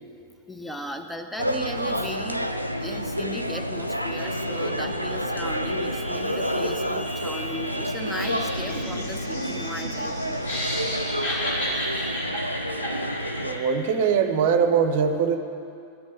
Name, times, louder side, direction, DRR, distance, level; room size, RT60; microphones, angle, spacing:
voice 1, 0.5-2.4 2.8-12.3, equal, ahead, 5 dB, 0.6 m, -36 dB
sound 1, 1.4-13.6, equal, 90° right, 0.4 m, -29 dB
Laughter, 8.0-13.8, left 1 dB, 70° left, 3.2 m, -32 dB
voice 2, 13.4-15.4, right 6 dB, 50° right, 8 dB, 0.7 m, -22 dB
13.0 x 5.3 x 8.1 m, 2.6 s
figure-of-eight pair, 90°, 0 cm